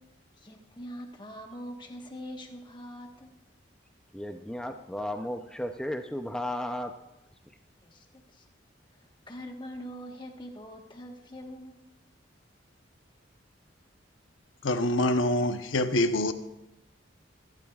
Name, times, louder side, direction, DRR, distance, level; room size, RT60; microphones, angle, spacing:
voice 1, 0.4-3.3 7.8-8.4 8.9-11.8, equal, 25° left, 1.3 m, -43 dB
voice 2, 4.1-6.9, left 1 dB, 5° left, 0.6 m, -34 dB
voice 3, 14.6-16.3, left 1 dB, 85° left, 0.9 m, -25 dB
23.0 x 12.0 x 2.4 m
head